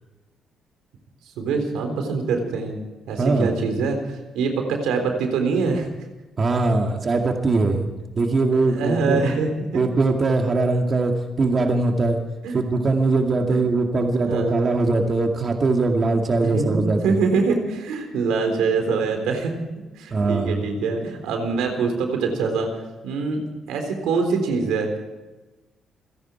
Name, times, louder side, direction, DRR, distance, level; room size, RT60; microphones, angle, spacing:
voice 1, 1.4-2.8 3.1-5.9 8.5-9.8 12.4-12.6 13.5-13.6 14.2-14.8 16.4-19.5 19.9-22.7 23.0-24.9, right 4 dB, 90° right, 4 dB, 3.8 m, -24 dB
voice 2, 3.2-3.5 6.4-7.9 8.2-9.2 9.7-12.2 12.5-17.0 20.1-20.6, right 3 dB, 40° right, 3 dB, 2.2 m, -21 dB
29.0 x 11.0 x 4.6 m, 1.2 s
cardioid pair, 90°, 0 cm